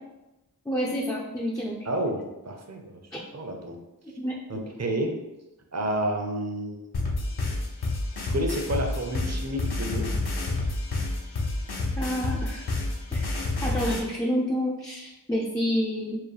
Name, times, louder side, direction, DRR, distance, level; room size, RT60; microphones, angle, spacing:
voice 1, 0.7-1.9 4.2-4.4 12.0-12.7 13.1-16.2, equal, 10° left, -4 dB, 0.5 m, -29 dB
voice 2, 1.9-3.0 3.3-3.7 4.5-5.1 5.7-6.9 8.2-10.1, right 1 dB, 40° right, 2 dB, 0.7 m, -30 dB
sound 1, 6.9-14.0, left 2 dB, 70° left, 0.7 m, -29 dB
4.6 x 2.2 x 3.3 m, 0.98 s
wide cardioid pair, 55°, 40 cm